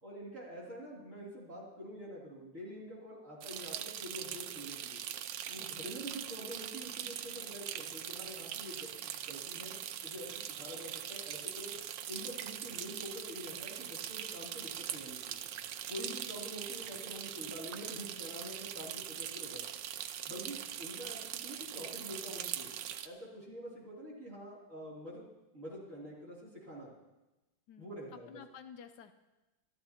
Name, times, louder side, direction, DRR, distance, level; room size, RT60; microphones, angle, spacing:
voice 1, 0.0-5.0 5.5-9.7 10.0-11.7 12.1-15.4 15.9-19.6 20.3-22.7 23.0-25.2 25.5-26.9 27.8-28.3, equal, 45° right, -6 dB, 3.4 m, -46 dB
sound 1, 3.4-23.1, right 10 dB, 80° right, 1.4 m, -42 dB
voice 2, 5.6-6.2 16.0-16.3 20.3-20.7 27.7-29.1, left 8 dB, 70° left, 9 dB, 1.1 m, -54 dB
27.0 x 12.0 x 2.9 m, 1.0 s
omnidirectional pair, 2.0 m